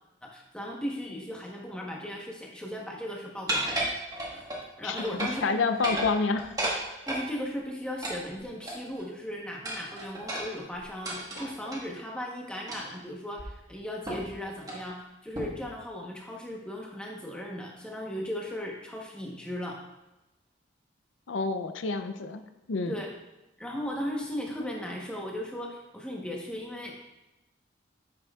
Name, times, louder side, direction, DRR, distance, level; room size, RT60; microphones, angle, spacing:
voice 1, 0.2-3.9 4.3-4.4 4.8-5.6 7.1-19.8 22.9-23.2 23.6-26.9, left 1 dB, 5° left, -2 dB, 1.0 m, -37 dB
sound 1, 3.5-4.6 5.0-5.5 5.7-7.3 8.0-9.0 9.6-11.8 12.7-13.0 13.4-13.5 14.1-14.3 14.6-14.8 15.3-15.7, right 1 dB, 20° right, 1.3 m, -33 dB
voice 2, 4.8-6.5 21.3-22.4 22.7-23.0, left 4 dB, 90° left, 9 dB, 0.5 m, -28 dB
9.1 x 6.6 x 2.4 m, 1.0 s
head